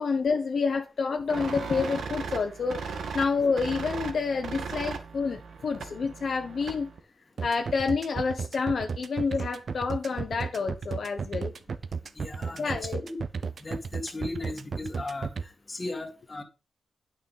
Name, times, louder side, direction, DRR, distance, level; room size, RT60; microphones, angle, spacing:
voice 1, 0.0-6.9 7.4-11.5 12.6-13.0, left 4 dB, 60° left, 1.0 m, -28 dB
sound 1, 1.3-7.0, right 5 dB, 80° right, 1.8 m, -37 dB
sound 2, 7.4-15.4, right 5 dB, 55° right, 0.8 m, -33 dB
voice 2, 12.2-12.8 13.0-13.2 13.6-15.3 15.7-16.4, left 2 dB, 25° left, 2.2 m, -36 dB
9.4 x 5.8 x 5.5 m
wide cardioid pair, 105°, 0 cm